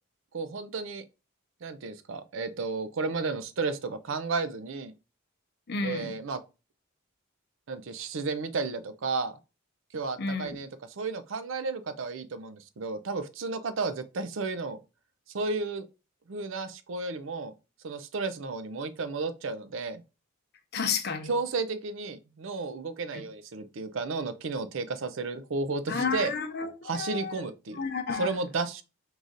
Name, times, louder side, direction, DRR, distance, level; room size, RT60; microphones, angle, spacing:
voice 1, 0.3-1.0 1.6-4.9 5.8-6.4 7.7-9.4 9.9-14.8 15.3-15.9 16.3-17.5 17.8-20.0 21.2-26.3 26.8-27.8 28.1-28.8, right 3 dB, 65° right, 0.5 m, -33 dB
voice 2, 5.7-6.1 10.2-10.5 20.7-21.3 25.9-26.7 26.9-27.3 27.8-28.3, left 5 dB, 50° left, 0.6 m, -31 dB
4.7 x 2.5 x 3.9 m
head